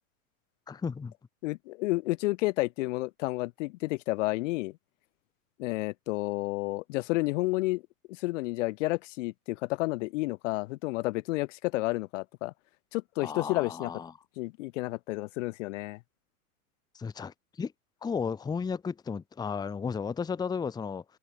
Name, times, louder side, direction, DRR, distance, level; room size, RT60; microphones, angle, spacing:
voice 1, 0.7-1.1 13.2-14.1 16.9-17.7 18.0-21.0, left 6 dB, 10° left, 0.7 m, -34 dB
voice 2, 1.4-4.7 5.6-7.8 8.2-12.5 12.9-13.9 14.4-16.0, left 21 dB, 55° left, 0.7 m, -31 dB
hypercardioid pair, 100°, 44 cm